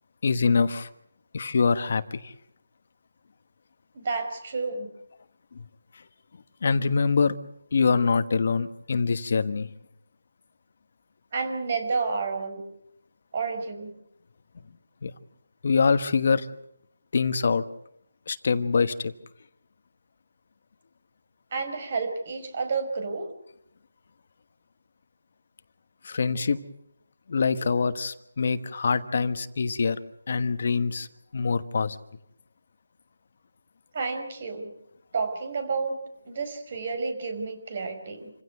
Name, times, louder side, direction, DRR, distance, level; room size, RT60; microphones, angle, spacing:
voice 1, 0.2-0.9 1.3-2.3 6.6-7.3 7.7-9.7 15.0-15.1 15.6-16.5 17.1-17.6 18.3-19.1 26.0-26.6 27.3-30.0 30.3-31.1 31.3-32.0, left 5 dB, 55° left, 11 dB, 1.3 m, -24 dB
voice 2, 3.9-4.9 11.3-12.6 13.3-13.9 21.5-23.3 33.9-34.7 35.1-36.0 36.3-38.3, right 4 dB, 45° right, 8 dB, 5.2 m, -30 dB
27.5 x 16.0 x 8.0 m, 0.76 s
figure-of-eight pair, 160°, 0 cm